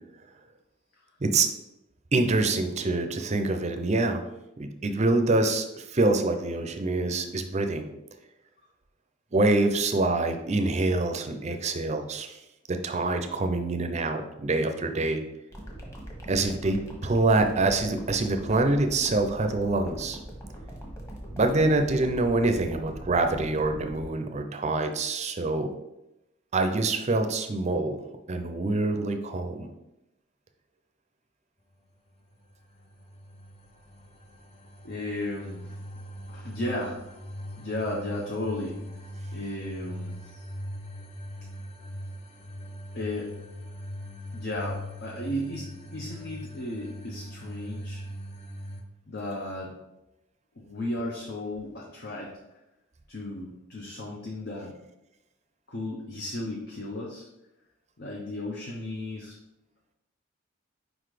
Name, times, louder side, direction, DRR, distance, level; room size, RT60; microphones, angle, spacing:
voice 1, 2.1-4.2 4.6-7.8 9.3-12.4 12.7-15.2 16.3-20.2 21.3-25.7 26.5-28.0 28.3-29.7, right 2 dB, 35° right, 6 dB, 0.6 m, -25 dB
sound 1, 15.5-24.1, equal, 15° left, 1.3 m, -42 dB
sound 2, 32.5-48.8, equal, 30° left, 0.6 m, -41 dB
voice 2, 34.8-35.8 36.3-37.0 37.6-38.8 39.3-40.5 42.9-43.3 44.3-48.0 49.1-49.7 50.6-52.3 53.1-54.7 55.7-57.2 58.0-59.3, left 1 dB, 55° left, -2 dB, 0.9 m, -34 dB
5.0 x 4.0 x 4.9 m, 0.92 s
head